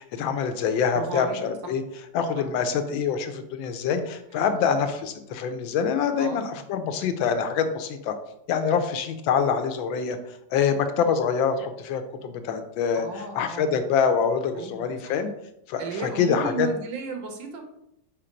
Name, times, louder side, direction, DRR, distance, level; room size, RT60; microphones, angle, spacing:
voice 1, 0.0-1.8 2.1-8.1 8.5-10.2 10.5-13.1 13.3-15.3 15.7-16.7, left 6 dB, 90° left, 8 dB, 1.4 m, -25 dB
voice 2, 0.9-1.4 2.4-2.5 4.4-4.8 6.2-6.4 8.7-8.8 12.9-13.9 14.5-15.2 15.8-17.6, right 4 dB, 75° right, 4 dB, 1.6 m, -35 dB
4.5 x 4.2 x 5.1 m, 0.82 s
omnidirectional pair, 2.1 m